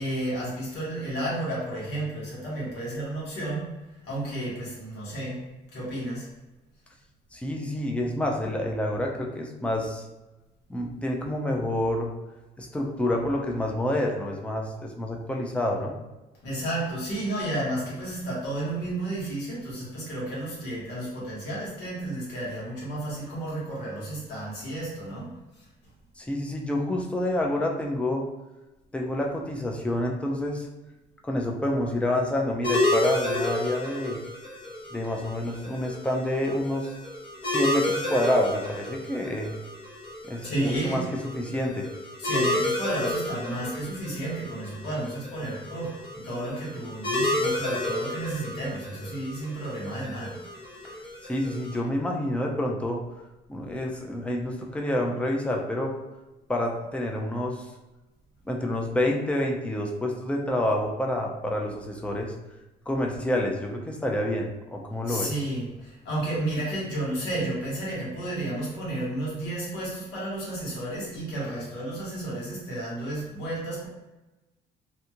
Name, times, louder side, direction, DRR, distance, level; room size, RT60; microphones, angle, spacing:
voice 1, 0.0-5.4 5.7-6.3 16.4-25.6 40.4-41.1 42.2-50.4 65.1-73.9, right 1 dB, 80° left, -5 dB, 1.3 m, -32 dB
voice 2, 7.3-10.0 10.7-12.1 12.6-15.9 26.2-28.2 28.9-30.7 31.2-34.2 34.9-36.9 37.4-39.5 40.2-41.0 41.4-41.9 51.3-53.0 53.5-55.9 56.5-57.7 58.5-62.3 62.9-65.3, left 1 dB, 5° left, 0 dB, 0.4 m, -28 dB
sound 1, 32.6-51.8, left 1 dB, 30° left, 0.8 m, -31 dB
2.7 x 2.3 x 2.8 m, 1.1 s
cardioid pair, 110°, 17 cm